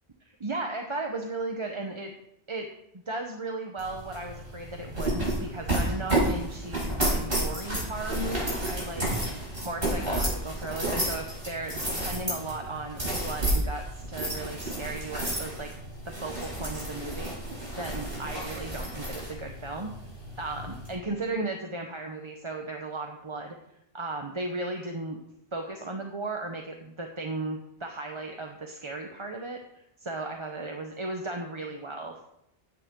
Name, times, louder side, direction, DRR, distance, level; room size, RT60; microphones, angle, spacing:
voice 1, 0.3-2.1 2.5-2.7 3.1-9.1 9.6-15.7 16.1-19.9 20.4-23.6 23.9-25.2 25.5-32.3, right 2 dB, 30° right, 3 dB, 1.0 m, -36 dB
sound 1, 3.8-20.9, right 1 dB, 65° right, 6.0 m, -31 dB
15.0 x 9.8 x 3.8 m, 0.79 s
omnidirectional pair, 1.0 m